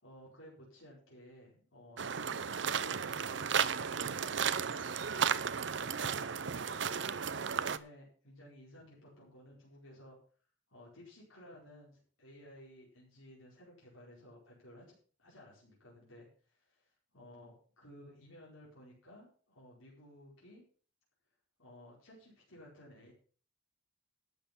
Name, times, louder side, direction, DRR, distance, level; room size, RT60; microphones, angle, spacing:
voice 1, 0.0-4.9 5.5-10.2 10.7-14.8 15.2-20.6 21.6-23.1, left 1 dB, 90° left, -5 dB, 4.7 m, -56 dB
sound 1, 2.0-7.8, right 7 dB, 60° right, 0.6 m, -34 dB
12.5 x 8.2 x 5.8 m, 0.42 s
head